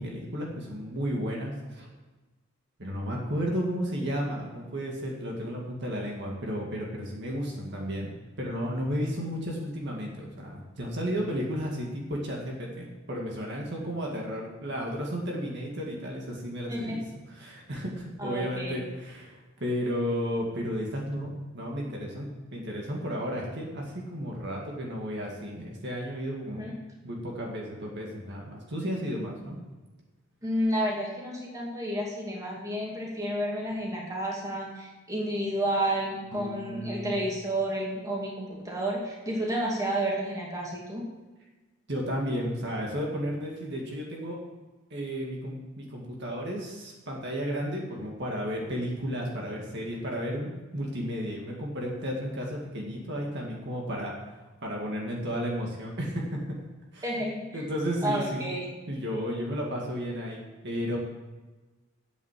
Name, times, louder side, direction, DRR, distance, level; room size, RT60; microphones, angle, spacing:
voice 1, 0.0-1.9 2.8-17.0 17.3-29.6 36.3-37.1 41.9-44.4 44.9-54.2 54.6-56.4 56.9-57.1 57.5-58.5 58.9-61.0, equal, 50° right, -1 dB, 2.1 m, -33 dB
voice 2, 18.2-18.8 26.5-26.7 30.4-41.0 57.0-57.6 58.0-58.7, right 1 dB, 15° right, -3 dB, 2.4 m, -31 dB
9.4 x 8.5 x 7.5 m, 1.2 s
head